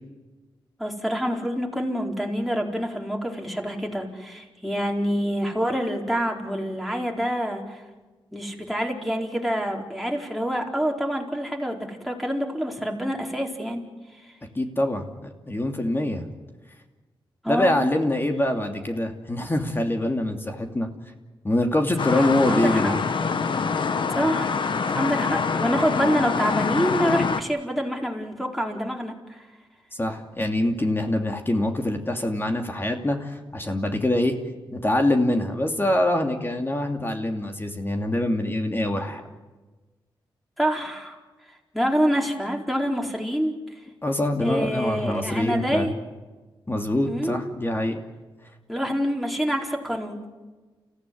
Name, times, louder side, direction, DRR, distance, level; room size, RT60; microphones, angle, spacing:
voice 1, 0.8-7.8 8.3-13.8 14.2-14.3 17.4-17.7 22.1-23.0 24.1-29.4 40.6-41.2 41.7-43.5 44.4-45.9 47.0-47.4 48.7-50.2, equal, ahead, 0 dB, 4.4 m, -26 dB
voice 2, 14.5-16.2 17.5-20.9 21.4-23.0 29.9-34.4 34.7-39.2 44.0-45.9 46.7-48.0, left 1 dB, 25° left, 4 dB, 2.8 m, -24 dB
sound 1, 22.0-27.4, left 5 dB, 65° left, 1.5 m, -25 dB
29.5 x 15.5 x 9.6 m, 1.3 s
cardioid pair, 65°, 9 cm